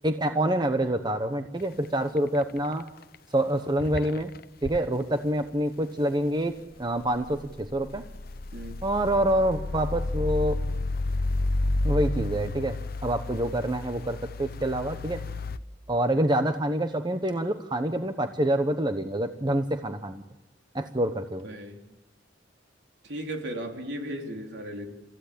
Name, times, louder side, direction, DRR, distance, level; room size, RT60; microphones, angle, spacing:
voice 1, 0.0-2.8 3.3-4.3 4.6-8.0 8.8-10.6 11.8-12.8 13.0-15.2 15.9-20.2 20.7-21.5, right 1 dB, 25° right, 7 dB, 1.0 m, -26 dB
sound 1, 1.6-1.9 2.2-2.8 3.1-3.2 3.8-4.8 6.9-15.6, left 2 dB, 50° left, 0.8 m, -31 dB
voice 2, 21.4-21.8 23.0-24.9, right 1 dB, 65° right, 3 dB, 3.8 m, -36 dB
30.0 x 15.0 x 8.7 m, 1.0 s
head